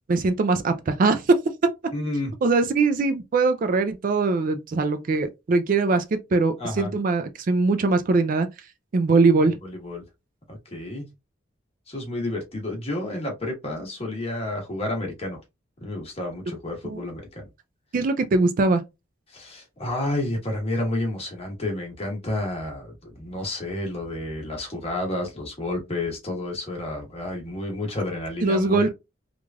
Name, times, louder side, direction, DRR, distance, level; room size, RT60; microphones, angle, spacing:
voice 1, 0.1-1.4 2.4-8.5 8.9-9.6 16.8-17.0 17.9-18.8 28.4-28.9, right 3 dB, 45° right, 0.4 m, -21 dB
voice 2, 1.9-2.3 6.6-6.9 9.6-10.0 10.5-11.1 11.9-15.4 15.8-17.4 19.3-28.9, left 1 dB, 30° left, 1.1 m, -30 dB
3.1 x 2.4 x 2.2 m
head